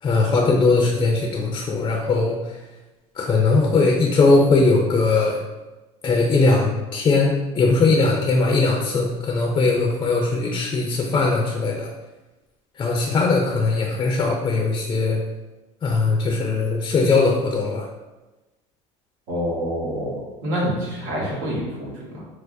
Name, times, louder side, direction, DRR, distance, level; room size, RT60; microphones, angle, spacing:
voice 1, 0.0-2.6 3.2-5.4 6.0-11.9 12.8-15.2 15.8-17.9, left 3 dB, 30° left, 0 dB, 0.5 m, -20 dB
voice 2, 19.3-20.2 20.4-22.2, equal, 75° right, -4 dB, 1.3 m, -26 dB
4.5 x 2.0 x 2.6 m, 1.1 s
supercardioid pair, 100°, 15 cm